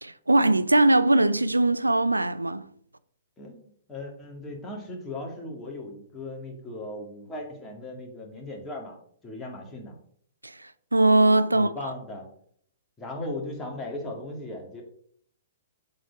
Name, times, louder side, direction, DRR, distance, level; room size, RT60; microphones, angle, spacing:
voice 1, 0.0-2.7 10.4-11.9, right 2 dB, 90° right, 0.3 m, -21 dB
voice 2, 3.4-9.0 9.2-10.0 11.5-12.3 13.0-14.8, left 2 dB, 15° left, 2.2 m, -37 dB
7.6 x 4.3 x 5.9 m
figure-of-eight pair, 115°, 0 cm